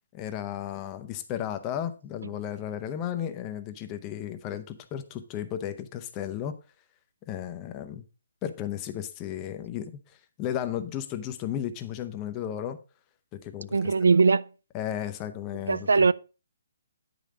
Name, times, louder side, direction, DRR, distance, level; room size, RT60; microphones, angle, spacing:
voice 1, 0.1-6.5 7.3-8.0 8.4-12.8 13.3-13.9 14.7-15.9, left 10 dB, 20° left, 0.8 m, -34 dB
voice 2, 13.7-14.5 15.7-16.1, right 4 dB, 85° right, 0.4 m, -20 dB
9.0 x 5.4 x 4.8 m
hypercardioid pair, 160°, 0 cm